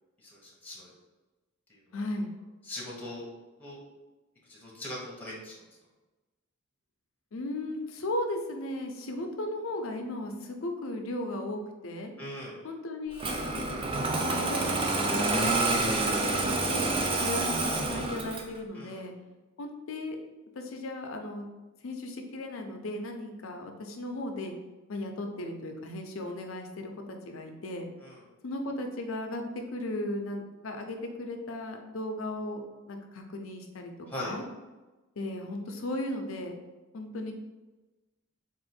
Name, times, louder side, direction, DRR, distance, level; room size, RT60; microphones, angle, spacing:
voice 1, 0.2-0.9 1.7-1.8 2.7-3.3 3.6-3.8 4.5-5.5 12.2-12.6 18.7-19.1 28.0-28.2 34.1-34.4, left 1 dB, 10° left, -4 dB, 0.9 m, -40 dB
voice 2, 1.9-2.3 7.3-12.1 12.6-16.9 17.2-19.1 19.6-20.2 20.6-21.5 21.8-24.5 24.9-27.9 28.4-29.4 29.7-33.9 34.2-34.4 35.2-36.5 36.9-37.3, left 1 dB, 70° left, 4 dB, 0.6 m, -36 dB
Engine starting, 13.2-18.6, right 2 dB, 25° right, 0.4 m, -28 dB
3.7 x 2.5 x 4.2 m, 1.2 s
head